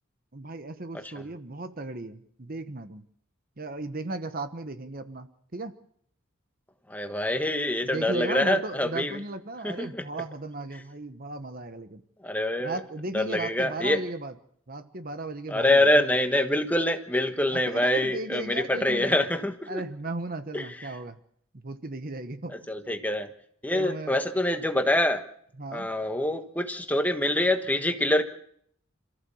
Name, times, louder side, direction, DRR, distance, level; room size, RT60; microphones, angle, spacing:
voice 1, 0.3-3.0 3.6-5.7 7.8-12.0 12.6-14.3 14.7-16.0 17.5-19.1 19.7-21.2 21.5-22.6 23.7-24.1 25.6-25.9, right 2 dB, 45° right, 10 dB, 1.1 m, -36 dB
voice 2, 6.9-9.2 9.6-10.0 12.2-12.8 13.1-14.0 15.5-19.8 20.5-20.9 22.7-23.3 23.6-25.2 25.7-28.2, left 1 dB, 10° left, 6 dB, 1.4 m, -25 dB
27.0 x 14.5 x 7.1 m, 0.67 s
head